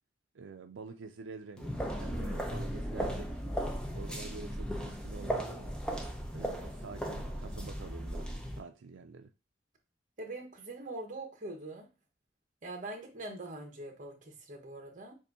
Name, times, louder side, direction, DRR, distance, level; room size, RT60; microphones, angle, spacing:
voice 1, 0.3-1.7 2.0-3.4 3.9-5.7 6.3-8.3 8.6-9.3, right 4 dB, 85° right, 0.4 m, -47 dB
sound 1, 1.6-8.6, equal, 5° left, 0.6 m, -36 dB
voice 2, 10.2-11.9 12.6-15.1, right 2 dB, 40° right, 1.2 m, -43 dB
6.9 x 2.6 x 2.7 m
head